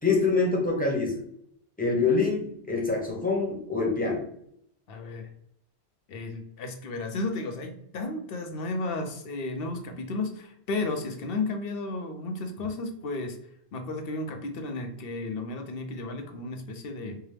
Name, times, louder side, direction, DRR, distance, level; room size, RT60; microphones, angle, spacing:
voice 1, 0.0-1.2 1.8-4.2, left 4 dB, 10° left, -2 dB, 0.9 m, -25 dB
voice 2, 4.9-5.3 6.1-13.4 13.7-17.2, left 2 dB, 60° left, 4 dB, 0.8 m, -33 dB
4.5 x 2.0 x 3.3 m, 0.69 s
omnidirectional pair, 1.1 m